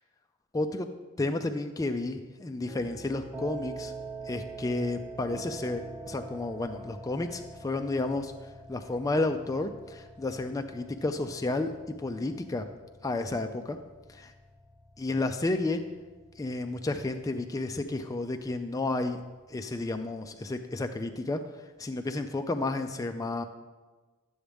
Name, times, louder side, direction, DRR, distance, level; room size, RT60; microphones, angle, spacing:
voice 1, 0.5-0.9 1.2-3.9 4.2-8.3 8.7-11.7 12.0-12.7 13.0-13.8 14.1-14.3 15.0-15.8 16.4-19.2 19.5-21.4 21.8-23.4, left 2 dB, 15° left, 6 dB, 0.3 m, -31 dB
sound 1, 2.7-20.6, right 3 dB, 15° right, 0.9 m, -46 dB
11.5 x 7.1 x 3.4 m, 1.3 s
head